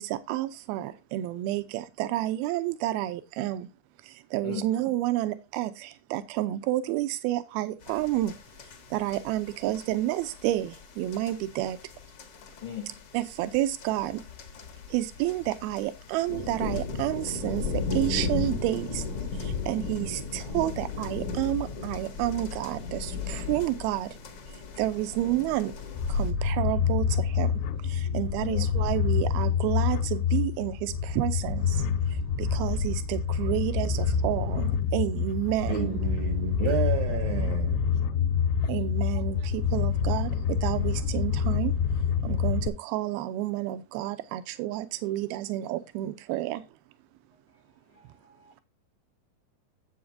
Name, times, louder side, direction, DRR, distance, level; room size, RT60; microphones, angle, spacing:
voice 1, 0.0-3.7 4.0-8.3 8.9-11.8 13.1-14.2 14.9-19.0 19.3-24.2 24.5-25.7 26.1-36.0 38.7-41.7 42.2-46.7, right 14 dB, 90° right, 2.6 m, -30 dB
sound 1, 7.8-26.3, left 4 dB, 55° left, 1.6 m, -36 dB
voice 2, 12.6-12.9 28.4-28.7 36.6-36.8 37.1-37.2 47.9-48.6, left 8 dB, 75° left, 1.2 m, -38 dB
sound 2, 26.0-42.7, left 6 dB, 90° left, 2.6 m, -27 dB
voice 3, 35.7-37.8, right 10 dB, 70° right, 1.6 m, -31 dB
10.0 x 7.9 x 2.7 m
omnidirectional pair, 4.3 m